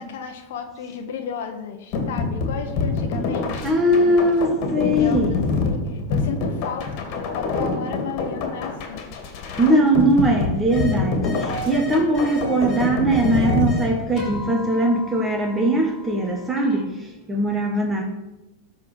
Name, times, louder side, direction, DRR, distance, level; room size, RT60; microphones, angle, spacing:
voice 1, 0.0-4.5 4.7-9.1, left 6 dB, 75° left, 6 dB, 1.2 m, -34 dB
sound 1, 1.9-14.5, left 4 dB, 55° left, 2.1 m, -26 dB
voice 2, 3.6-5.3 9.6-18.0, right 1 dB, 15° right, 1 dB, 1.6 m, -20 dB
sound 2, 10.7-10.9 11.2-13.9 14.1-16.8, right 1 dB, 35° left, 2.5 m, -35 dB
13.0 x 4.4 x 6.2 m, 0.98 s
hypercardioid pair, 115°, 0 cm